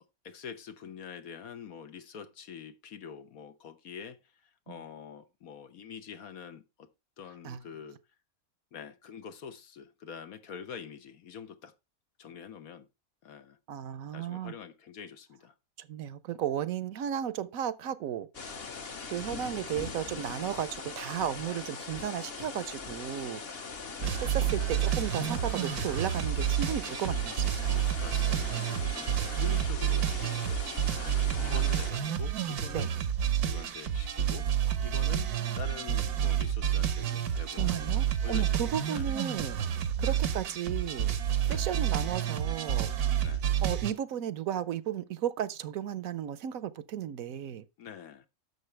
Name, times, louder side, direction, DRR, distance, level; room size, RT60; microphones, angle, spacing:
voice 1, 0.2-6.9 7.2-8.0 8.7-11.7 12.2-12.9 13.2-13.6 14.1-15.5 24.0-24.2 28.0-32.9 33.4-34.5 34.8-37.8 38.2-39.1 40.0-40.3 41.4-41.7 43.2-43.5 47.8-48.3, left 7 dB, 75° left, 1.4 m, -45 dB
voice 2, 13.7-14.5 15.8-18.3 19.1-23.4 24.2-27.9 31.3-31.6 32.7-32.9 37.5-39.6 40.0-41.2 41.5-42.9 43.6-47.6, right 10 dB, 70° right, 1.1 m, -34 dB
sound 1, 18.3-31.9, left 4 dB, 45° left, 1.2 m, -41 dB
sound 2, 24.0-43.9, right 10 dB, 90° right, 1.5 m, -29 dB
10.5 x 7.0 x 3.3 m
omnidirectional pair, 1.6 m